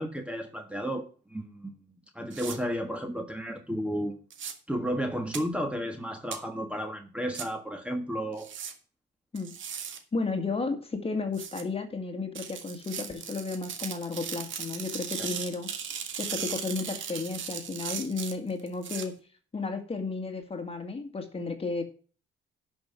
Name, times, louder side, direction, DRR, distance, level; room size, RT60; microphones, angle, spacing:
voice 1, 0.0-1.7 2.1-4.2 4.7-8.5, equal, 5° right, 1.4 m, -33 dB
sound 1, 2.3-2.6 4.3-4.5 5.3-5.4 6.3-6.4 7.3-7.4 8.4-8.7 9.4-10.0 11.3-11.6 12.3-19.0, right 8 dB, 75° right, 1.7 m, -37 dB
voice 2, 10.1-15.7 16.2-19.2 19.5-21.8, left 4 dB, 30° left, 1.9 m, -33 dB
11.0 x 5.8 x 6.0 m
cardioid pair, 90°, 20 cm